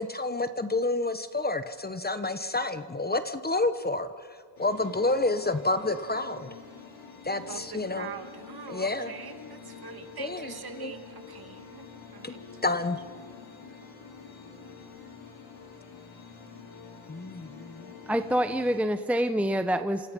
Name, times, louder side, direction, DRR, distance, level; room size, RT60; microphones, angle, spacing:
voice 1, 0.0-4.1 4.6-6.5 7.2-8.1 8.7-9.1 10.2-10.9 12.2-12.3 12.6-13.0 17.8-17.9, left 2 dB, 20° left, 10 dB, 1.2 m, -29 dB
sound 1, 4.6-18.8, left 5 dB, 75° left, 6.6 m, -47 dB
voice 2, 7.3-12.6, right 6 dB, 50° right, 6 dB, 2.7 m, -44 dB
voice 3, 18.1-20.1, equal, 5° right, 9 dB, 0.9 m, -26 dB
27.5 x 27.0 x 5.5 m, 2.1 s
cardioid pair, 80°, 47 cm